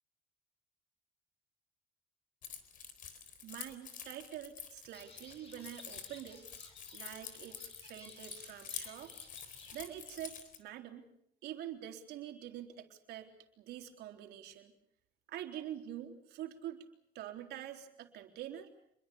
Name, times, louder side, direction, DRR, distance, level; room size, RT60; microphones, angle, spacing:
Keys jangling, 2.4-10.6, left 7 dB, 55° left, 4.0 m, -48 dB
voice 1, 3.4-6.5 6.9-9.1 9.7-11.1 11.4-13.3 13.6-14.7 15.3-16.8 17.1-18.7, right 11 dB, 80° right, 4 dB, 3.8 m, -46 dB
sound 1, 4.9-10.0, left 2 dB, 35° left, 7.3 m, -58 dB
27.5 x 22.5 x 7.0 m, 0.74 s
cardioid pair, 110°, 17 cm